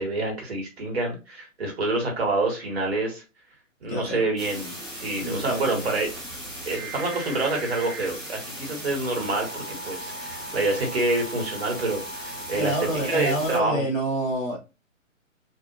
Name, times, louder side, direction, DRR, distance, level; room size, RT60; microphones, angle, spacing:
voice 1, 0.0-3.2 3.8-6.1 6.7-12.8 13.1-13.8, right 2 dB, 50° right, 1 dB, 2.0 m, -27 dB
voice 2, 3.9-4.2 5.2-5.9 12.5-14.6, right 1 dB, 75° left, -2 dB, 1.8 m, -28 dB
sound 1, 4.4-13.6, right 1 dB, ahead, 0.7 m, -37 dB
4.8 x 2.7 x 2.8 m, 0.28 s
figure-of-eight pair, 130°, 40 cm